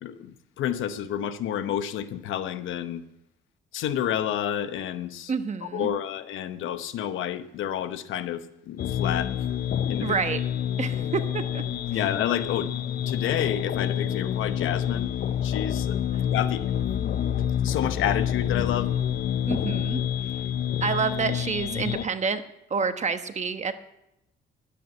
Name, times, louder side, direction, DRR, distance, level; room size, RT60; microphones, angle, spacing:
voice 1, 0.0-3.0 3.7-5.3 5.6-9.4 9.9-10.1 11.9-12.7 13.0-16.7 17.0-17.2 17.6-18.9, left 10 dB, 80° left, 12 dB, 0.9 m, -30 dB
voice 2, 5.3-5.9 10.0-10.4 10.8-11.6 19.5-20.0 20.8-22.4 22.7-23.7, right 5 dB, 35° right, 9 dB, 1.1 m, -28 dB
sound 1, 8.8-22.1, left 9 dB, 50° left, 0.5 m, -28 dB
11.0 x 8.5 x 9.3 m, 0.84 s
cardioid pair, 90°, 20 cm